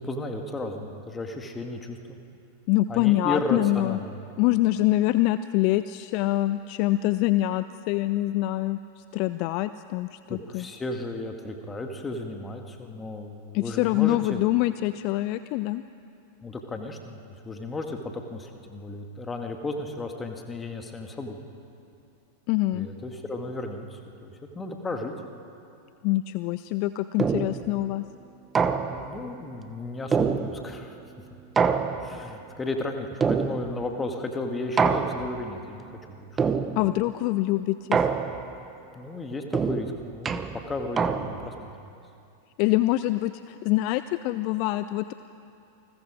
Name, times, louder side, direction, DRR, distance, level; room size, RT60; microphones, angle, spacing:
voice 1, 0.0-2.2 2.9-4.1 10.3-14.4 16.4-21.4 22.7-25.1 28.9-31.0 32.0-36.4 38.9-41.7, left 2 dB, 15° left, 4 dB, 2.0 m, -34 dB
voice 2, 2.7-4.0 4.4-10.7 13.5-15.8 22.5-22.9 26.0-28.0 36.8-38.0 42.6-45.1, left 16 dB, 45° left, 13 dB, 0.5 m, -25 dB
sound 1, 27.2-27.7 28.6-29.2 30.1-30.9 31.6-32.4 33.2-33.9 34.8-35.5 36.4-37.0 37.9-38.6 39.5-41.6, right 5 dB, 20° right, 0.9 m, -26 dB
28.5 x 20.5 x 5.1 m, 2.6 s
figure-of-eight pair, 90°, 0 cm